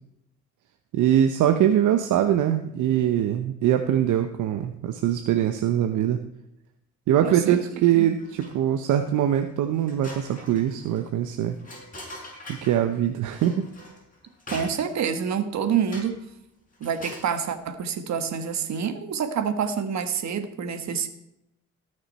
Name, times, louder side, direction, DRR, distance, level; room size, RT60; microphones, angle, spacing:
voice 1, 0.9-6.2 7.1-11.6 12.5-13.7, right 10 dB, 80° right, 7 dB, 0.9 m, -22 dB
voice 2, 7.2-7.6 7.9-8.1 14.5-16.2 16.8-21.1, right 7 dB, 65° right, 9 dB, 1.6 m, -27 dB
sound 1, 8.2-8.8 9.2-9.3 9.7-12.8 13.3-15.1 15.9-16.3 16.7-17.3, left 1 dB, 25° left, 5.4 m, -43 dB
18.5 x 6.5 x 4.2 m, 0.83 s
cardioid pair, 90°, 30 cm